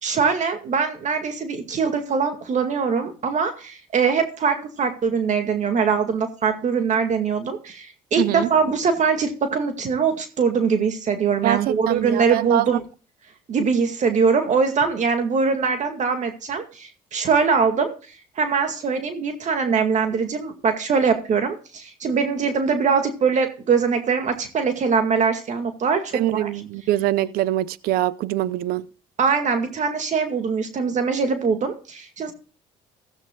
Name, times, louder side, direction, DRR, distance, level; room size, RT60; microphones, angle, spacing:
voice 1, 0.0-12.8 13.5-17.9 18.4-26.5 29.2-32.3, right 5 dB, 50° right, 2.1 m, -22 dB
voice 2, 8.2-8.5 11.4-12.6 26.1-28.8, right 15 dB, 75° right, 0.7 m, -23 dB
16.0 x 13.5 x 2.4 m
supercardioid pair, 75°, 16 cm